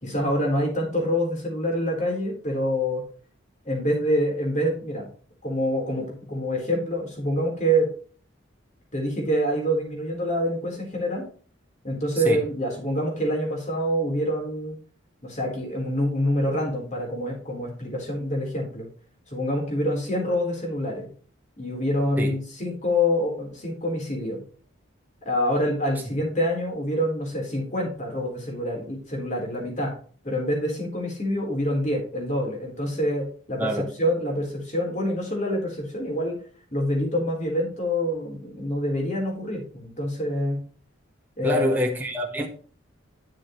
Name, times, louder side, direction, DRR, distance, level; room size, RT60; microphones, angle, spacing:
voice 1, 0.0-3.0 3.7-5.1 5.4-7.9 8.9-11.2 11.8-14.8 15.2-18.9 19.3-21.1 21.6-24.4 25.2-29.9 30.2-33.7 34.0-36.4 36.7-40.6 41.4-41.8, equal, 35° left, 4.0 m, -26 dB
voice 2, 33.6-33.9 41.4-42.5, equal, 10° right, 1.3 m, -26 dB
10.5 x 7.3 x 3.2 m
head